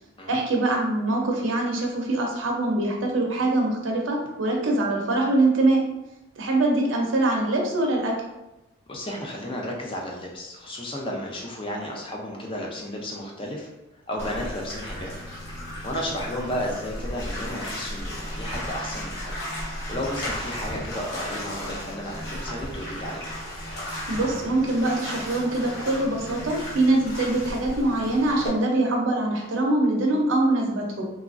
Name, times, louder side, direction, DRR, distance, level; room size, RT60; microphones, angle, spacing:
voice 1, 0.3-5.8 6.4-8.1 24.1-31.0, right 2 dB, 75° right, 0 dB, 0.6 m, -23 dB
voice 2, 8.9-13.7 14.1-15.1 15.8-19.3 19.9-23.3, equal, 25° left, -1 dB, 0.4 m, -33 dB
Bathtub (filling or washing), 14.2-28.5, equal, 55° left, 0.8 m, -35 dB
2.9 x 2.4 x 2.4 m, 0.96 s
head